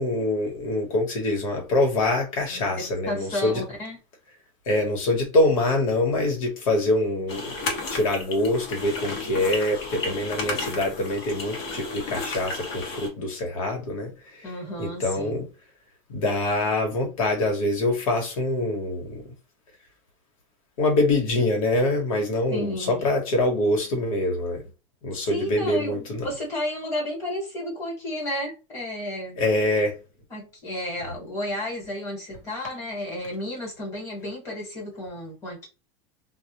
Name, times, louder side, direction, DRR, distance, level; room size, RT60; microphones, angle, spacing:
voice 1, 0.0-3.6 4.7-7.5 7.9-14.5 14.8-15.4 16.1-19.2 20.8-24.6 25.0-26.3 29.4-30.0, left 2 dB, 80° left, 1.1 m, -24 dB
voice 2, 2.5-4.0 14.4-15.5 22.5-23.0 25.2-29.4 30.3-35.7, left 1 dB, 15° left, 1.3 m, -32 dB
sound 1, 7.3-13.1, left 3 dB, 50° left, 0.9 m, -33 dB
2.3 x 2.0 x 2.8 m
supercardioid pair, 175°, 17 cm